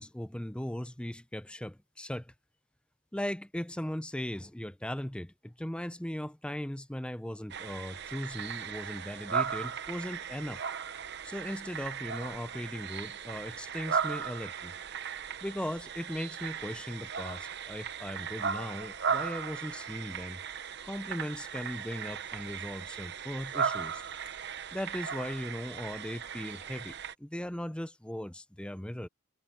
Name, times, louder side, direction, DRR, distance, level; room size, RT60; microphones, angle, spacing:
voice 1, 0.0-2.3 3.1-10.6 11.2-14.7 15.4-20.4 20.8-24.0 24.7-26.9 27.2-29.1, equal, 5° left, 0.5 m, -38 dB
sound 1, 7.5-27.1, right 6 dB, 50° right, 0.9 m, -37 dB
head